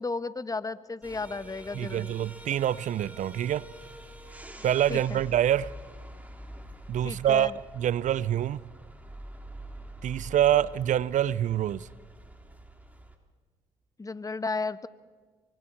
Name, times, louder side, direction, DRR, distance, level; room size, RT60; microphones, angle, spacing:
voice 1, 0.0-2.1 4.9-5.2 7.0-7.5 14.0-14.9, left 3 dB, 25° left, 1.1 m, -34 dB
sound 1, 1.0-13.2, right 1 dB, 10° right, 3.3 m, -46 dB
voice 2, 1.7-3.7 4.6-5.7 6.9-8.6 10.0-11.9, right 11 dB, 60° right, 0.5 m, -26 dB
25.0 x 24.5 x 4.4 m
supercardioid pair, 55°, 14 cm